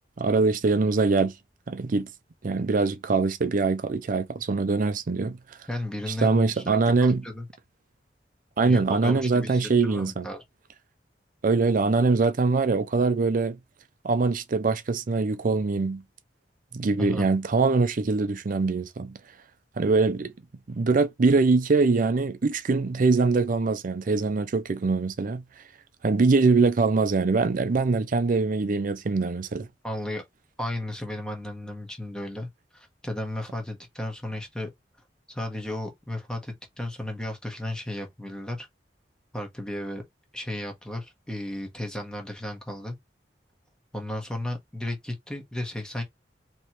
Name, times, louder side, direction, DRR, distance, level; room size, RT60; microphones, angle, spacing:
voice 1, 0.2-1.3 1.7-2.1 2.4-5.4 6.2-7.2 8.6-10.3 11.4-13.6 14.0-16.0 16.7-19.2 19.8-20.3 20.7-25.4 26.0-29.7, right 3 dB, 50° right, 0.5 m, -23 dB
voice 2, 5.7-7.4 8.6-10.4 17.0-17.3 29.8-30.2 30.6-34.7 35.3-38.7 39.3-40.0 40.3-43.0 43.9-46.0, left 1 dB, 5° left, 1.2 m, -34 dB
3.2 x 3.0 x 4.3 m
head